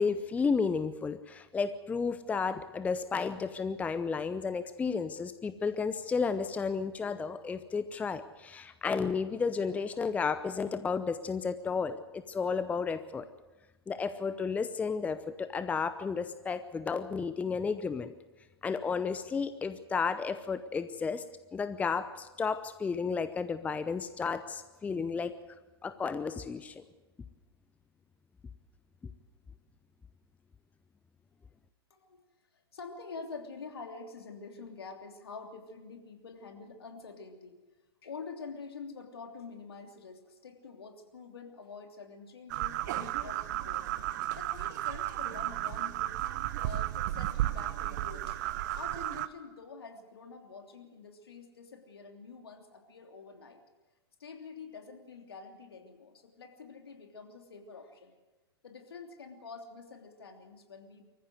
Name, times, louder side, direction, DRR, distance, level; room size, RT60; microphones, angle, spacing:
voice 1, 0.0-13.3 13.9-18.1 18.6-21.2 21.5-25.3 25.8-26.8, left 5 dB, 10° left, 12 dB, 0.7 m, -32 dB
voice 2, 32.5-37.6 38.0-43.9 44.3-46.2 46.6-48.4 48.7-53.6 54.2-58.1 58.6-61.1, left 4 dB, 70° left, 4 dB, 3.2 m, -47 dB
sound 1, 42.5-49.3, right 14 dB, 45° right, 0.9 m, -33 dB
24.5 x 15.0 x 8.0 m, 1.2 s
figure-of-eight pair, 105°, 13 cm